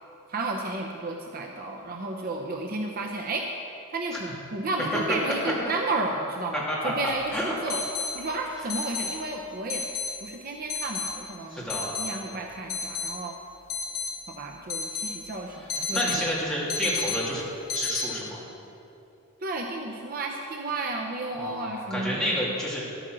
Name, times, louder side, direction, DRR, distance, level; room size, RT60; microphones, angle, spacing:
voice 1, 0.3-3.5 3.9-7.8 8.1-9.8 10.2-11.7 12.0-13.4 14.3-16.4 19.4-22.5, right 2 dB, 40° right, 2 dB, 0.7 m, -32 dB
sound 1, 7.1-7.2 7.7-8.1 8.7-9.1 9.7-10.1 10.7-11.1 11.7-12.1 12.7-13.1 13.7-14.1 14.7-15.1 15.7-16.3 16.7-17.2 17.7-18.0, left 5 dB, 75° left, 1.5 m, -30 dB
voice 2, 11.5-11.9 15.9-17.4 17.7-18.4 21.3-22.8, equal, 5° left, -6 dB, 2.5 m, -29 dB
11.5 x 9.1 x 6.2 m, 2.8 s
head